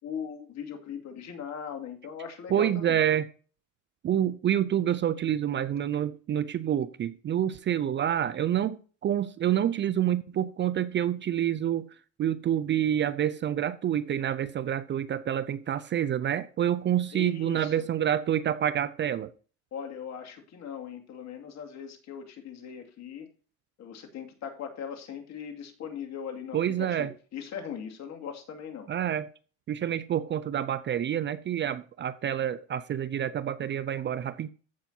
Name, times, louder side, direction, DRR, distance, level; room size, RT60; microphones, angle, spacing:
voice 1, 0.0-3.0 17.1-17.8 19.7-23.3 23.8-28.9, left 7 dB, 50° left, 2.4 m, -39 dB
voice 2, 2.5-3.3 4.0-8.8 9.0-11.9 12.2-19.3 26.5-27.1 28.9-29.3 29.7-34.5, right 10 dB, 30° right, 0.5 m, -27 dB
15.0 x 5.8 x 2.8 m
supercardioid pair, 95°, 35 cm